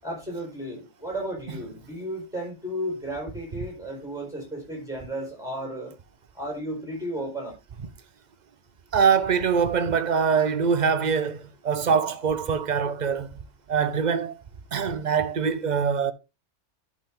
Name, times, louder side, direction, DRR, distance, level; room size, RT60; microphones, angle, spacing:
voice 1, 0.0-5.9 6.3-7.6, equal, 5° right, 4.6 m, -34 dB
voice 2, 8.9-13.3 13.7-14.3 14.7-16.1, right 6 dB, 45° right, 0.7 m, -23 dB
11.5 x 5.3 x 3.7 m
omnidirectional pair, 1.2 m